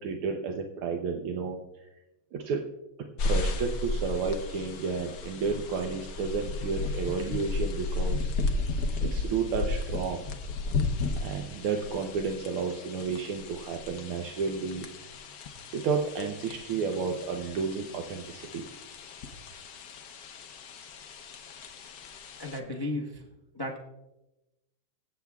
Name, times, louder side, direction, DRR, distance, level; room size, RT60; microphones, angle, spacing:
voice 1, 0.0-1.8 2.3-2.6 3.2-8.3 9.0-10.2 11.2-14.9 15.7-18.7, right 5 dB, 80° right, 3 dB, 1.7 m, -31 dB
sound 1, 3.2-22.6, left 3 dB, 60° left, 1.1 m, -34 dB
voice 2, 22.4-23.2 23.5-23.8, left 1 dB, 25° left, 1 dB, 0.5 m, -34 dB
23.5 x 8.3 x 2.3 m, 0.97 s
omnidirectional pair, 2.4 m